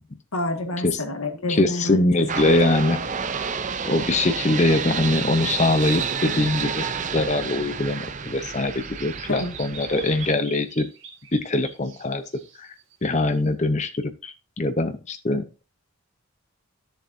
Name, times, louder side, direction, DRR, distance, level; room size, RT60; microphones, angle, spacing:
voice 1, 0.3-2.7 9.3-9.5, left 2 dB, 75° left, 1.8 m, -28 dB
voice 2, 1.5-3.0 3.8-6.9 7.1-10.9 11.3-12.2 12.6-12.7 13.0-15.6, left 2 dB, 30° left, 0.7 m, -23 dB
sound 1, 2.3-10.3, right 6 dB, 35° right, 0.5 m, -30 dB
Bird vocalization bird call bird song, 7.6-13.5, right 6 dB, 60° right, 2.0 m, -44 dB
13.5 x 6.9 x 2.7 m
head